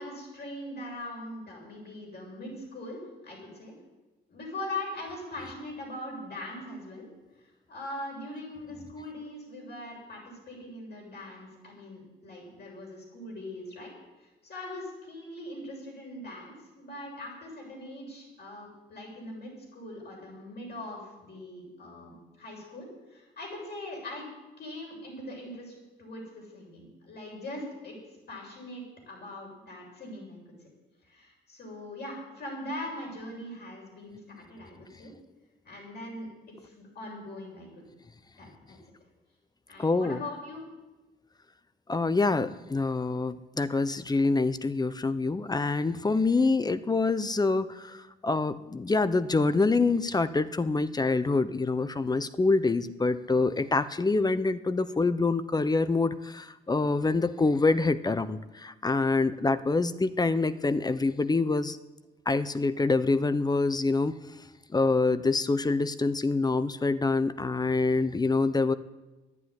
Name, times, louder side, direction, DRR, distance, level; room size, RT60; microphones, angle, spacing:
voice 1, 0.0-3.7 4.3-7.1 7.7-13.9 14.2-24.3 24.6-25.7 26.0-28.0 28.3-30.4 31.1-35.1 35.6-37.8 38.4-38.8 39.7-40.6, left 1 dB, 55° left, -2 dB, 7.3 m, -41 dB
voice 2, 39.8-40.2 41.9-61.8 62.3-64.2 64.7-68.7, left 3 dB, 20° left, 14 dB, 0.8 m, -26 dB
11.5 x 11.0 x 9.8 m, 1.1 s
cardioid pair, 90°, 20 cm